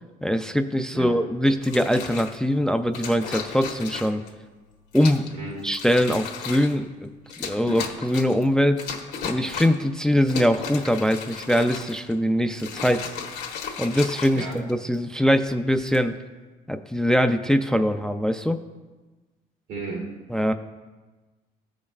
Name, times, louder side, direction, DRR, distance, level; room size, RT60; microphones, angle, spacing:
voice 1, 0.2-4.2 4.9-5.3 5.6-7.1 7.4-8.8 9.2-13.0 13.8-16.1 16.7-18.6 20.3-20.5, equal, 5° left, 7 dB, 0.3 m, -22 dB
sound 1, 1.6-2.4 2.9-4.3 4.9-5.3 5.7-6.8 7.3-8.4 8.8-9.9 10.2-12.1 12.5-14.9 15.7-16.0, left 6 dB, 80° left, 1.4 m, -35 dB
voice 2, 19.7-20.1, right 3 dB, 85° right, -1 dB, 2.7 m, -33 dB
15.0 x 5.2 x 2.4 m, 1.3 s
cardioid pair, 110°, 17 cm